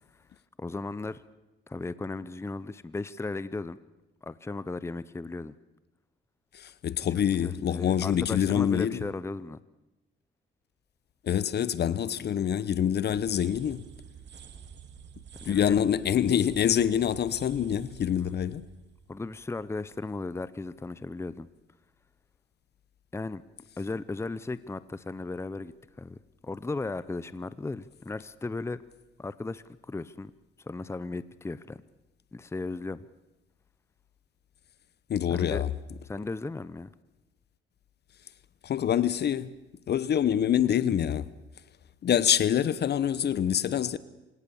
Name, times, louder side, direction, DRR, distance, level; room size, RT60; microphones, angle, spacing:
voice 1, 0.6-1.2 1.7-3.8 4.2-5.5 7.0-9.6 12.0-12.1 15.4-15.8 18.2-18.5 19.1-21.5 23.1-23.4 23.8-25.7 26.0-26.2 26.4-28.8 29.2-30.3 30.6-31.8 32.3-33.0 35.3-35.6 36.0-36.9, left 3 dB, 15° left, 0.7 m, -36 dB
voice 2, 6.8-9.0 11.3-13.8 15.5-18.6 35.1-35.7 38.7-39.5 39.9-41.2 42.0-44.0, left 9 dB, 55° left, 1.0 m, -25 dB
sound 1, 13.0-19.9, right 7 dB, 60° right, 2.4 m, -49 dB
27.0 x 17.5 x 7.1 m
cardioid pair, 90°, 20 cm